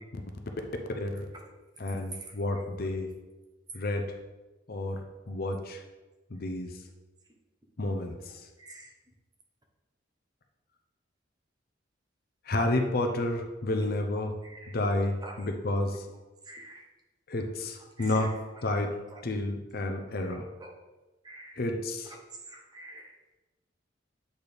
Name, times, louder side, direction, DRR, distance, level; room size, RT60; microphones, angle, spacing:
voice 1, 0.9-1.2 1.8-3.1 3.7-4.1 4.7-5.0 5.3-5.8 6.3-6.7 7.8-8.3 12.5-14.3 14.7-16.1 17.3-18.3 18.6-18.9 19.2-20.4 21.5-22.1, left 2 dB, 55° left, 4 dB, 0.7 m, -30 dB
voice 2, 2.1-2.6 8.3-8.9 14.1-14.8 15.2-15.5 16.4-16.9 18.0-18.6 19.1-19.2 20.2-20.7 21.2-21.6 22.1-23.1, right 2 dB, 20° right, 1 dB, 0.9 m, -47 dB
8.1 x 4.3 x 3.5 m, 1.1 s
head